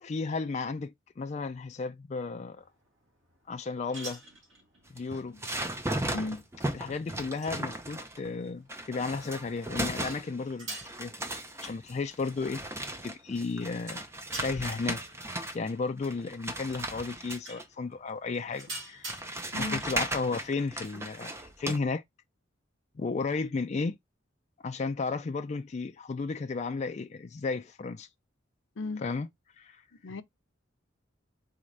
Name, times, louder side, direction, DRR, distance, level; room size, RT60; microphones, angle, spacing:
voice 1, 0.0-2.6 3.5-4.2 4.9-5.4 6.7-11.1 11.6-12.6 13.0-14.0 14.4-15.0 15.5-19.1 19.6-21.3 21.6-22.0 23.0-24.0 24.6-28.1 29.0-29.3 29.6-29.8, left 4 dB, 35° left, 0.4 m, -33 dB
sound 1, 2.6-20.4, right 2 dB, 75° right, 2.3 m, -49 dB
sound 2, 4.9-8.3 8.7-10.5 10.8-15.7 16.0-17.6 18.5-18.6 19.1-21.8, right 1 dB, 15° right, 0.6 m, -36 dB
voice 2, 5.3-5.4 6.1-6.4 19.5-19.8 28.8-29.0 30.0-30.2, left 3 dB, 80° left, 0.7 m, -35 dB
4.2 x 3.7 x 3.2 m
head